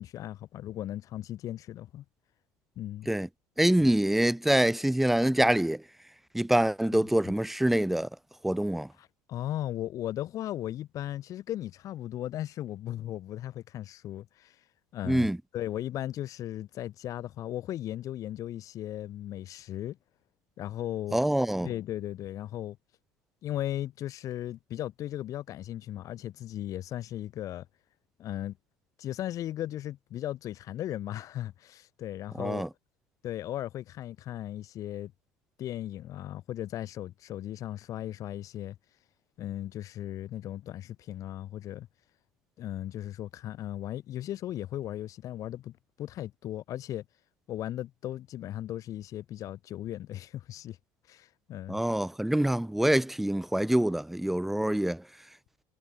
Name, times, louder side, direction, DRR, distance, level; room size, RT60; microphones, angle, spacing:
voice 1, 0.0-2.0 2.8-3.1 3.8-3.9 6.9-7.1 9.0-14.6 14.9-20.0 20.6-21.2 21.6-22.8 23.4-27.7 28.2-28.6 29.0-32.6 33.2-35.1 35.6-38.7 39.4-41.9 42.6-47.0 47.5-50.8 51.1-51.8, left 13 dB, 40° left, 7.7 m, -37 dB
voice 2, 3.6-5.8 6.3-8.1 8.4-8.9 15.0-15.4 21.1-21.7 32.4-32.7 51.7-55.0, right 1 dB, 5° right, 0.7 m, -25 dB
cardioid pair, 165°, 8 cm